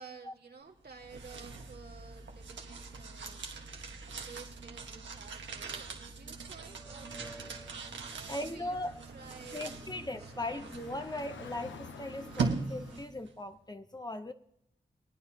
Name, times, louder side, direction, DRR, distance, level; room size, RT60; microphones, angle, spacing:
voice 1, 0.0-3.5 4.0-7.6 8.0-8.8 9.1-10.6 11.0-11.1, right 5 dB, 60° right, 2.1 m, -52 dB
sound 1, 0.7-13.3, right 4 dB, 85° right, 1.4 m, -41 dB
sound 2, 6.3-13.1, right 1 dB, ahead, 1.3 m, -53 dB
Car / Traffic noise roadway noise, 7.9-13.0, left 7 dB, 90° left, 0.6 m, -53 dB
voice 2, 8.3-9.0 9.5-14.3, left 1 dB, 20° left, 0.8 m, -39 dB
22.5 x 9.4 x 2.8 m
cardioid pair, 50°, 19 cm